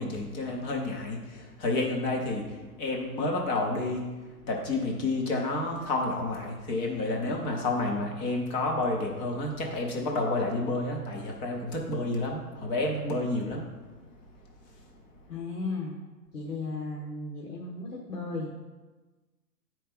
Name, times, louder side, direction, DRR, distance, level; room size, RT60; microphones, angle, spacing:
voice 1, 0.0-4.1 4.5-13.7, left 2 dB, 10° left, 1 dB, 0.5 m, -30 dB
voice 2, 15.3-16.0 16.3-18.5, left 3 dB, 65° left, -2 dB, 1.4 m, -35 dB
9.2 x 4.5 x 5.2 m, 1.2 s
figure-of-eight pair, 120°, 49 cm